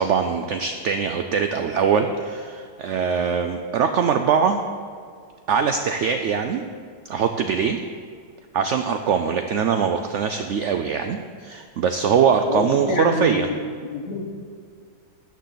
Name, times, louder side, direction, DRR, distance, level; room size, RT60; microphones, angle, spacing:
voice 1, 0.0-4.6 5.5-6.6 7.1-7.8 8.5-13.5, right 6 dB, 75° right, 7 dB, 0.6 m, -22 dB
voice 2, 12.5-14.3, left 2 dB, 55° left, 2 dB, 1.5 m, -27 dB
13.5 x 9.1 x 3.9 m, 2.1 s
omnidirectional pair, 1.8 m